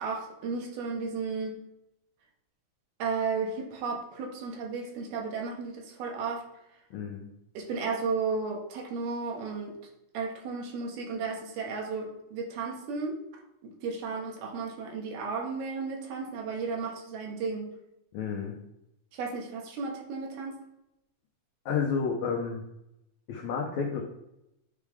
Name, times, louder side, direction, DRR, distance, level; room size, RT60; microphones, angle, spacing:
voice 1, 0.0-1.6 3.0-6.5 7.5-9.7 10.1-13.2 13.6-17.7 19.1-20.6, right 4 dB, 85° right, 0 dB, 3.0 m, -34 dB
voice 2, 6.9-7.3 18.1-18.6 21.6-22.6 23.3-24.0, left 6 dB, 85° left, 0 dB, 1.6 m, -30 dB
9.2 x 3.3 x 3.5 m, 0.85 s
omnidirectional pair, 4.3 m